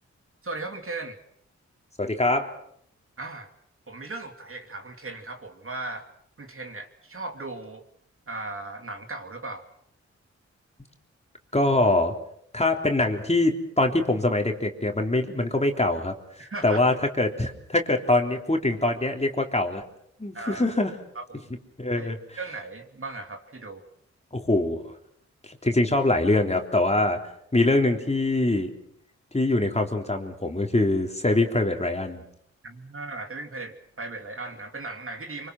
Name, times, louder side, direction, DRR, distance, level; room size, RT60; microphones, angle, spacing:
voice 1, 0.4-1.2 3.2-3.5 3.9-6.0 6.4-7.8 8.3-9.6 16.4-16.8 20.3-20.7 21.1-21.5 22.0-22.1 22.4-23.8 32.6-35.5, right 3 dB, 50° right, 5 dB, 3.0 m, -37 dB
voice 2, 2.0-2.5 11.5-12.1 12.5-16.1 16.6-19.8 20.2-20.9 21.8-22.2 24.3-24.8 25.5-27.2 27.5-28.7 29.3-32.2, left 2 dB, 20° left, 3 dB, 3.4 m, -23 dB
24.5 x 24.5 x 6.2 m, 0.70 s
cardioid pair, 50°, 29 cm